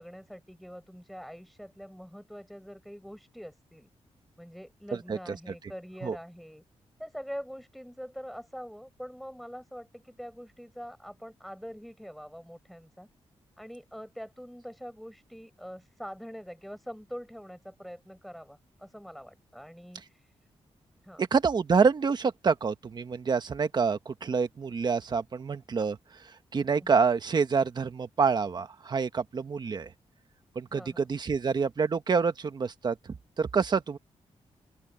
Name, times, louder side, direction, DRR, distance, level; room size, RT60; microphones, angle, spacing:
voice 1, 0.0-3.9 4.4-6.6 7.0-13.1 13.6-20.3 21.0-21.2 26.8-27.0 30.7-31.1, equal, ahead, 7.8 m, -44 dB
voice 2, 21.2-26.0 26.5-29.9 30.5-32.9 33.4-34.0, right 5 dB, 40° right, 1.4 m, -27 dB
open air
wide cardioid pair, 130°, 11 cm